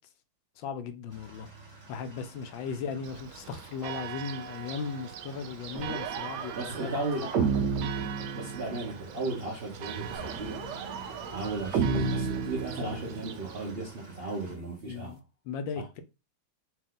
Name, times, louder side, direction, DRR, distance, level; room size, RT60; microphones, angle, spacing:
voice 1, 0.6-1.5 1.9-7.1 7.3-7.5 14.8-15.2 15.5-16.0, left 5 dB, 80° left, 1.3 m, -37 dB
sound 1, 1.1-14.5, right 3 dB, 20° right, 1.5 m, -49 dB
Church bell, 3.0-13.7, right 10 dB, 90° right, 1.4 m, -43 dB
sound 2, 5.7-9.0 10.1-13.4, right 5 dB, 70° right, 1.2 m, -32 dB
voice 2, 6.6-7.7 8.3-10.6 11.2-15.2 15.7-15.8, right 2 dB, 45° right, 0.8 m, -35 dB
4.4 x 2.6 x 3.8 m
omnidirectional pair, 2.1 m